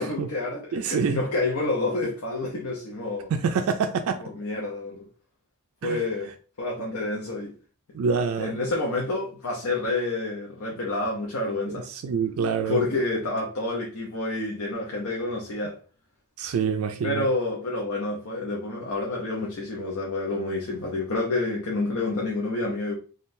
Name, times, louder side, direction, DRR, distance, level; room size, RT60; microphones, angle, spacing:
voice 1, 0.0-3.3 4.2-5.0 5.8-6.3 6.6-7.5 8.4-11.9 12.7-15.8 17.0-22.9, left 2 dB, 75° left, 0.7 m, -28 dB
voice 2, 0.7-1.2 3.3-4.3 5.8-6.0 7.9-8.6 11.7-12.8 16.4-17.3, right 5 dB, 70° right, 0.3 m, -26 dB
3.6 x 2.3 x 2.6 m
head